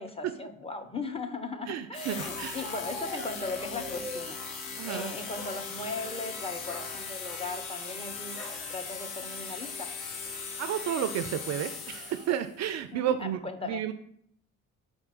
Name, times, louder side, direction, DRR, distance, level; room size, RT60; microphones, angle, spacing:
voice 1, 0.0-8.4 8.7-9.9 12.9-13.9, left 3 dB, 15° left, 5 dB, 0.8 m, -38 dB
voice 2, 1.7-2.6 4.8-5.1 10.3-13.9, right 10 dB, 45° right, 10 dB, 0.4 m, -32 dB
sound 1, 1.9-12.5, left 5 dB, 75° left, 0.9 m, -39 dB
Bark, 2.2-4.3 4.9-5.7 6.0-6.2 6.6-6.9 8.4-8.6 9.2-9.3 9.6-10.0, left 1 dB, 55° left, 2.2 m, -42 dB
4.4 x 4.3 x 5.7 m, 0.68 s
figure-of-eight pair, 45°, 41 cm